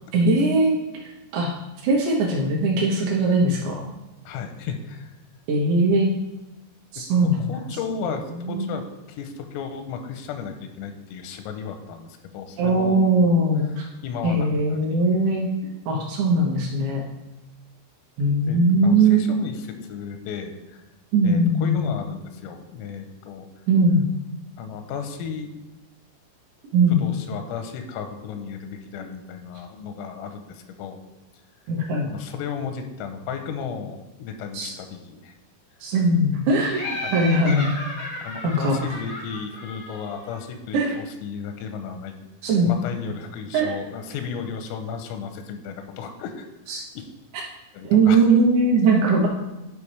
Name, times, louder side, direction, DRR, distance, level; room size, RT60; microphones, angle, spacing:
voice 1, 0.1-1.5 1.8-3.8 5.5-6.1 6.9-7.4 8.5-8.7 12.6-13.9 14.2-15.5 15.9-17.0 18.2-19.3 21.1-21.9 23.7-24.1 26.7-27.1 31.7-32.1 34.5-34.7 35.8-37.7 38.4-38.8 40.7-40.9 42.4-42.7 43.5-43.8 46.7-46.8 47.8-49.3, right 2 dB, 75° right, -2 dB, 2.8 m, -20 dB
voice 2, 4.3-5.1 7.0-13.3 14.0-15.1 18.5-20.8 21.2-23.5 24.6-25.5 26.9-31.0 32.1-35.3 37.0-37.1 38.2-42.1 42.6-47.1 47.7-48.2, left 6 dB, 85° left, 6 dB, 3.4 m, -34 dB
Laughter, 36.7-40.4, left 1 dB, 70° left, 1.3 m, -34 dB
12.0 x 4.9 x 3.3 m, 1.0 s
omnidirectional pair, 5.9 m